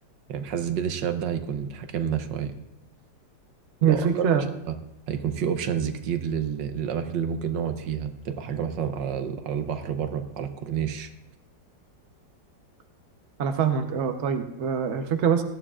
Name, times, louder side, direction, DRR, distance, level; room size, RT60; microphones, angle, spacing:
voice 1, 0.3-2.5 3.8-4.8 5.1-11.1, right 8 dB, 80° right, 8 dB, 1.5 m, -29 dB
voice 2, 3.8-4.4 13.4-15.4, right 7 dB, 50° right, 6 dB, 1.0 m, -24 dB
18.5 x 13.5 x 2.5 m, 0.84 s
omnidirectional pair, 2.0 m